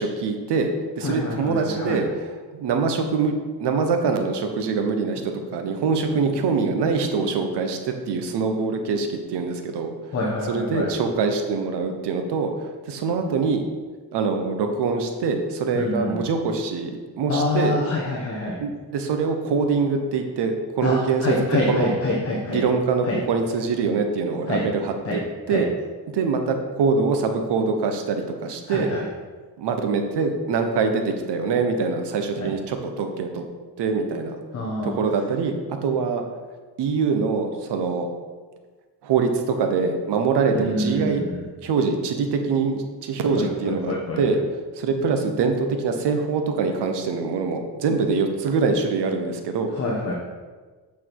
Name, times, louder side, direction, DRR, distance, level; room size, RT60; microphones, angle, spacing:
voice 1, 0.0-3.3 3.6-9.9 10.4-13.6 14.1-17.8 18.6-21.3 21.7-21.9 22.5-25.2 25.5-25.7 26.1-28.9 29.6-33.4 33.8-34.4 34.8-35.5 35.8-36.2 36.8-38.1 39.0-41.2 41.6-44.4 44.8-49.7, right 4 dB, 80° right, 5 dB, 1.2 m, -24 dB
voice 2, 1.0-2.0 10.1-10.9 15.7-16.2 17.3-18.5 20.8-22.6 23.0-23.2 24.5-24.6 25.0-25.2 25.5-25.6 28.7-29.1 32.4-32.5 34.5-35.0 40.5-41.4 43.3-44.2 49.7-50.1, left 2 dB, 35° left, -3 dB, 1.2 m, -26 dB
8.5 x 6.1 x 4.7 m, 1.4 s
cardioid pair, 165°, 40 cm